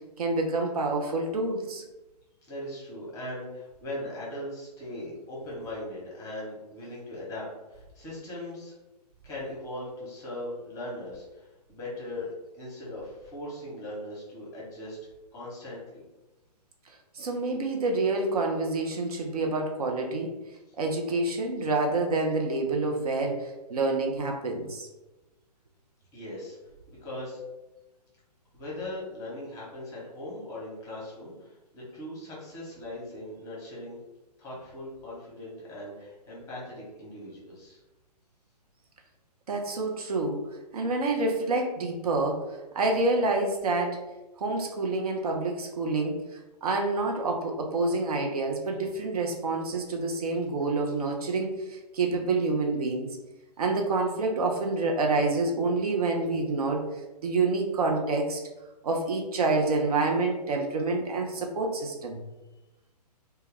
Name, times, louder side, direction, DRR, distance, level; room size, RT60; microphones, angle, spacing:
voice 1, 0.2-1.8 17.1-20.3 20.8-24.9 39.5-40.4 40.7-42.4 42.7-44.0 44.4-46.2 46.6-53.1 53.6-56.8 57.2-58.4 58.8-62.2, right 3 dB, 60° right, 2 dB, 0.5 m, -27 dB
voice 2, 2.5-8.7 9.2-15.0 15.3-16.0 26.1-26.6 27.0-27.4 28.5-34.0 34.4-37.8, left 1 dB, 15° left, -5 dB, 0.9 m, -39 dB
2.2 x 2.2 x 3.3 m, 1.0 s
figure-of-eight pair, 125°, 21 cm